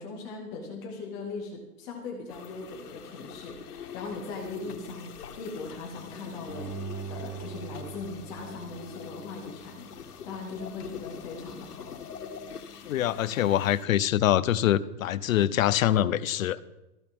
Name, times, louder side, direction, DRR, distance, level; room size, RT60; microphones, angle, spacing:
voice 1, 0.0-11.9, left 3 dB, 10° left, 1 dB, 0.4 m, -40 dB
sound 1, 2.3-13.9, left 7 dB, 85° left, 2.1 m, -44 dB
Bowed string instrument, 6.5-9.6 10.0-10.1, right 5 dB, 10° right, 2.0 m, -41 dB
voice 2, 12.9-16.6, left 12 dB, 60° left, 17 dB, 0.8 m, -24 dB
18.0 x 14.0 x 3.6 m, 0.99 s
hypercardioid pair, 160°, 45 cm